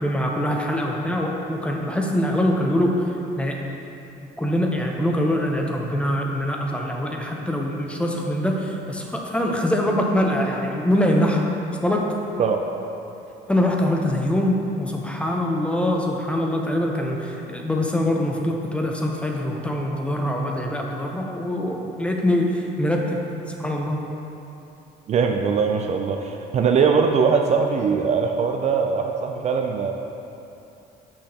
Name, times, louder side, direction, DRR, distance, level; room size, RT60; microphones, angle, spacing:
voice 1, 0.0-3.0 3.4-3.6 4.4-11.4 11.8-12.1 13.5-23.2 23.6-24.0, left 1 dB, 5° left, 0 dB, 0.6 m, -23 dB
voice 2, 25.1-29.9, right 5 dB, 45° right, 3 dB, 0.4 m, -21 dB
6.4 x 5.7 x 2.8 m, 2.8 s
cardioid pair, 110°, 17 cm